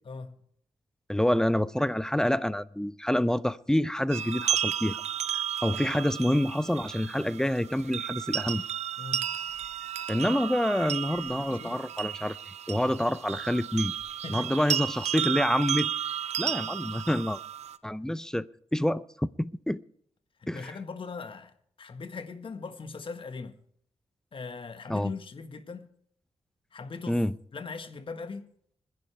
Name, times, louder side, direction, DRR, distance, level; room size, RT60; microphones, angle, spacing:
voice 1, 0.0-0.4 9.0-9.3 11.4-11.8 14.2-14.5 20.4-23.6 24.3-25.9 26.7-27.2 27.5-28.5, left 4 dB, 50° left, 1.6 m, -40 dB
voice 2, 1.1-5.0 5.6-8.6 10.1-12.4 12.7-13.9 14.3-15.9 16.4-17.4 17.8-18.5 18.7-19.8 20.5-20.7 24.9-25.1 27.1-27.3, left 1 dB, 5° left, 0.6 m, -27 dB
sound 1, 4.1-17.8, right 10 dB, 85° right, 0.6 m, -33 dB
26.0 x 11.0 x 3.4 m
cardioid pair, 75°, 11 cm